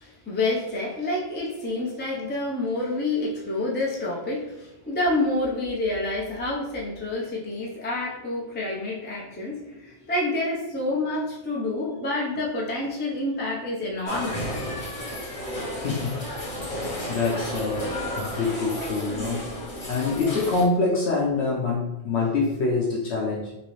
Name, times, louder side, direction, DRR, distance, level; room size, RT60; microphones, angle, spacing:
voice 1, 0.0-14.7, left 2 dB, 15° left, -4 dB, 0.3 m, -28 dB
sound 1, 14.0-20.6, left 1 dB, 35° left, 0.8 m, -32 dB
voice 2, 15.7-16.2 17.1-23.6, left 3 dB, 65° left, -4 dB, 0.9 m, -26 dB
3.0 x 2.9 x 3.0 m, 0.93 s
omnidirectional pair, 1.2 m